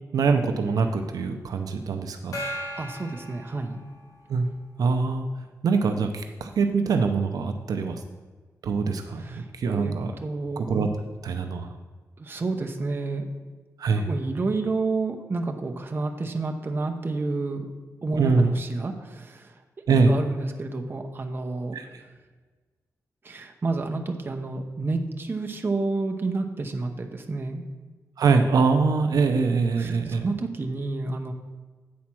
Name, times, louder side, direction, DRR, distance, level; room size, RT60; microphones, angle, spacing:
voice 1, 0.1-2.4 4.3-4.5 4.8-5.3 5.6-8.0 8.6-10.1 10.7-10.9 11.2-11.8 13.8-14.1 18.2-18.5 19.9-20.1 21.7-21.8 28.2-30.3, right 4 dB, 85° right, 6 dB, 0.6 m, -23 dB
Gong, 2.3-4.4, equal, 70° left, 2.1 m, -37 dB
voice 2, 2.8-3.8 9.2-9.5 9.7-10.0 10.2-10.6 12.2-13.3 14.0-17.7 18.0-19.5 20.1-21.7 23.2-27.6 29.8-31.3, right 3 dB, 35° right, 4 dB, 0.8 m, -30 dB
8.6 x 4.3 x 6.0 m, 1.4 s
wide cardioid pair, 105°, 6 cm